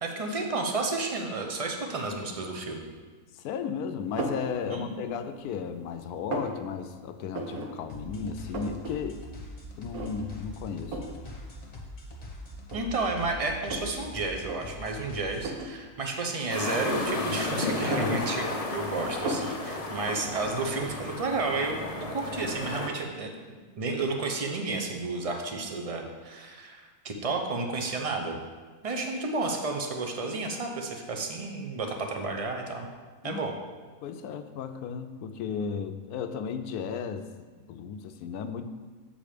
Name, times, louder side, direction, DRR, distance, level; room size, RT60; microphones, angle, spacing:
voice 1, 0.0-2.9 4.7-5.1 12.7-21.8 22.1-23.3 23.8-28.4 28.8-32.9 33.2-33.5, right 3 dB, 45° right, 3 dB, 0.4 m, -31 dB
voice 2, 3.3-9.3 9.8-11.0 33.2-33.4 34.0-37.3 37.7-38.7, left 6 dB, 85° left, 9 dB, 1.1 m, -35 dB
sound 1, 4.2-4.5 5.0-5.7 6.0-6.6 7.3-7.7 8.0-8.1 8.3-9.0 9.3-9.4 9.9-10.4 10.9-11.2 12.0-12.1 12.6-14.0 14.4-14.6 15.4-15.8 16.7-17.4 17.7-18.8 19.3-19.6, right 2 dB, 75° right, 1.4 m, -35 dB
sound 2, 7.9-15.6, left 1 dB, 30° left, 1.0 m, -43 dB
sound 3, 16.5-22.9, left 3 dB, 45° left, 0.4 m, -32 dB
7.3 x 5.1 x 5.0 m, 1.4 s
omnidirectional pair, 1.6 m